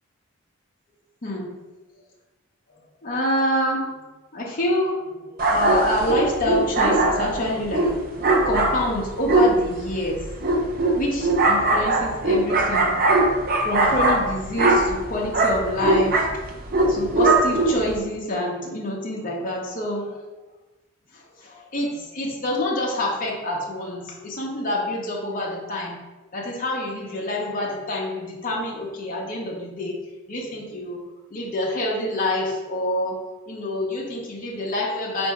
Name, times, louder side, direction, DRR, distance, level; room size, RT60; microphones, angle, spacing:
voice 1, 3.0-3.9 4.3-10.2 10.9-12.9 13.6-16.2 16.9-20.2 21.4-26.0 26.3-30.0 30.3-31.0 31.3-33.2 33.5-35.3, left 1 dB, 40° left, -3 dB, 0.8 m, -27 dB
sound 1, 5.4-18.0, right 2 dB, 45° right, 0.6 m, -21 dB
4.2 x 2.6 x 4.7 m, 1.1 s
head